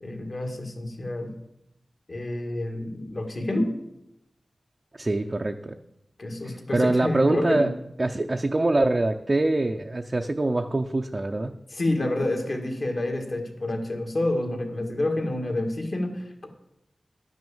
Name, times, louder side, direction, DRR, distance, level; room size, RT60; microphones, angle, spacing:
voice 1, 0.0-1.3 2.1-3.7 6.2-7.7 11.7-16.5, left 1 dB, 55° left, 3 dB, 1.9 m, -28 dB
voice 2, 4.9-5.7 6.4-7.7 8.0-11.5, right 2 dB, 35° right, 4 dB, 0.6 m, -24 dB
11.5 x 6.2 x 7.1 m, 0.85 s
wide cardioid pair, 85°, 0 cm